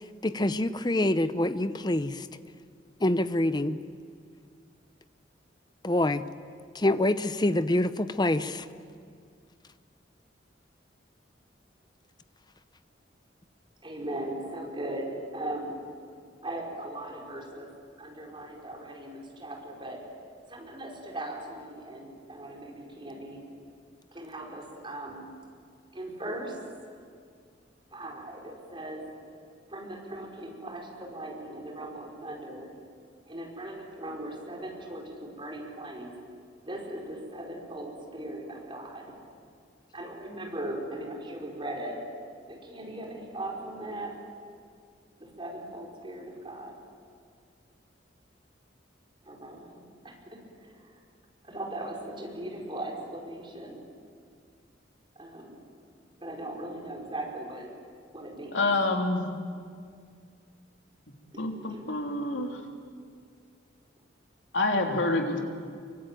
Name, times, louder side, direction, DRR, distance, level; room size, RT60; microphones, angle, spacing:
voice 1, 0.2-2.2 3.0-3.8 5.8-6.2 6.7-8.6, left 1 dB, 20° left, 12 dB, 0.8 m, -26 dB
voice 2, 13.8-15.7 16.4-17.7 18.0-20.0 20.5-23.4 24.1-25.3 25.9-26.9 27.9-29.1 29.7-32.7 33.3-36.1 36.7-39.1 39.9-42.0 42.5-44.2 45.2-46.7 49.2-51.0 51.4-53.8 55.1-55.6 56.2-57.7 58.1-58.7 61.3-61.4 61.7-61.9, right 1 dB, 25° right, -1 dB, 5.1 m, -39 dB
voice 3, 58.5-59.2 61.4-62.6 64.5-65.4, left 2 dB, 75° left, 2 dB, 3.2 m, -27 dB
25.5 x 24.0 x 9.2 m, 2.2 s
head